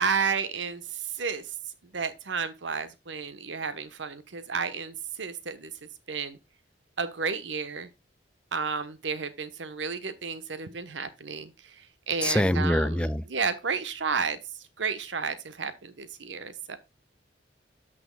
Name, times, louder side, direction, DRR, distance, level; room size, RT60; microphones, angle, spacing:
voice 1, 0.0-1.5 1.9-6.4 7.0-7.9 8.5-14.4 14.8-16.8, right 5 dB, 85° right, 1.0 m, -32 dB
voice 2, 12.2-13.2, left 1 dB, 5° left, 0.3 m, -24 dB
13.0 x 6.2 x 2.2 m
head